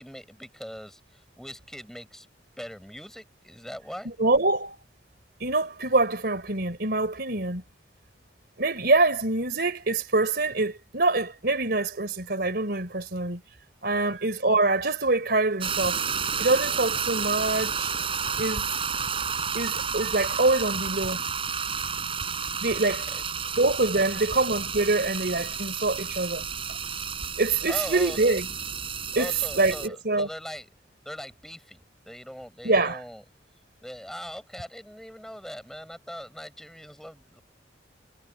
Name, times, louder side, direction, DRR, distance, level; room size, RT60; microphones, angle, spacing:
voice 1, 0.0-2.3 2.6-4.1 13.9-14.2 23.1-23.5 24.0-24.4 27.7-28.3 29.1-30.7 31.0-33.2 33.8-37.4, equal, ahead, 5.9 m, -41 dB
voice 2, 4.2-4.8 5.4-7.6 8.6-13.4 13.8-16.0 16.4-17.9 18.4-18.6 19.5-21.2 22.6-23.1 23.6-26.5 27.4-28.5 29.2-30.3 32.6-33.0, right 2 dB, 60° right, 3.6 m, -25 dB
sound 1, 15.6-29.9, right 6 dB, 30° right, 7.9 m, -31 dB
head